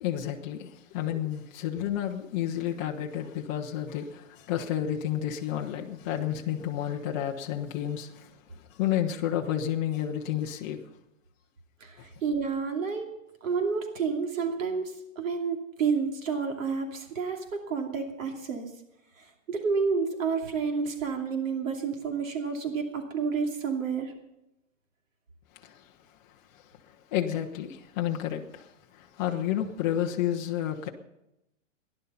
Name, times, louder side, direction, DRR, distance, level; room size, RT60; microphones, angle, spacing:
voice 1, 0.0-8.3 8.7-10.8 25.6-25.8 27.1-30.9, left 11 dB, 15° left, 0.5 m, -31 dB
voice 2, 11.8-13.1 13.4-18.7 19.2-24.1, right 5 dB, 85° right, 2.8 m, -30 dB
16.0 x 11.0 x 5.7 m
hypercardioid pair, 165°, 39 cm